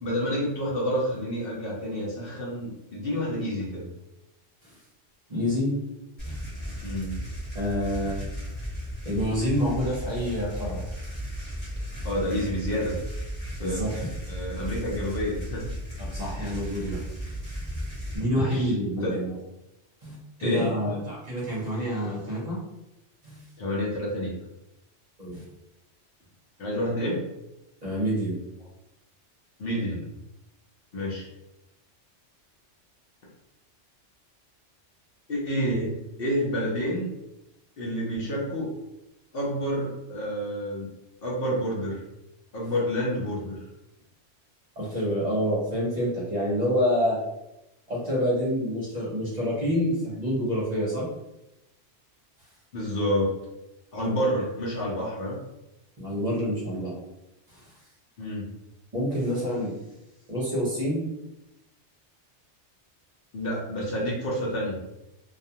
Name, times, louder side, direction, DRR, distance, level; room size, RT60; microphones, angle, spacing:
voice 1, 0.0-3.9 6.8-7.1 12.0-13.0 13.6-15.6 18.3-19.4 20.4-20.7 23.6-24.3 26.6-27.2 29.6-30.1 30.9-31.3 35.3-35.9 36.2-37.1 37.8-38.7 39.3-40.9 41.2-42.0 42.5-43.6 52.7-53.3 53.9-55.4 58.2-58.5 63.3-64.8, equal, 60° left, -4 dB, 0.8 m, -29 dB
voice 2, 5.3-5.8 6.2-6.4 7.5-8.3 9.0-10.8 13.6-13.9 16.0-17.0 17.5-17.9 18.1-19.3 20.0-22.6 23.2-23.4 25.2-25.4 27.8-28.4 44.8-47.2 47.9-51.1 56.0-57.0 57.5-57.6 58.9-59.8 60.3-61.0, equal, 40° right, -6 dB, 0.7 m, -27 dB
sound 1, 6.2-18.2, equal, 20° left, 1.0 m, -35 dB
2.4 x 2.3 x 2.7 m, 0.91 s
omnidirectional pair, 1.2 m